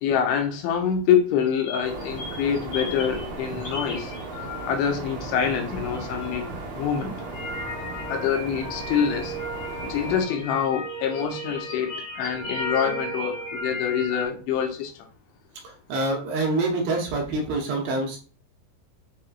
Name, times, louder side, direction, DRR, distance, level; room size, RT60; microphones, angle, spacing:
voice 1, 0.0-4.1 4.7-7.1 8.1-9.4 9.8-14.9, left 8 dB, 90° left, 3.1 m, -25 dB
sound 1, 1.5-5.1 5.4-14.3, equal, 60° left, 2.1 m, -36 dB
sound 2, 1.8-10.2, right 3 dB, 60° right, 1.9 m, -36 dB
voice 2, 15.6-18.2, right 2 dB, 75° right, 2.8 m, -26 dB
7.5 x 2.8 x 2.3 m
omnidirectional pair, 5.3 m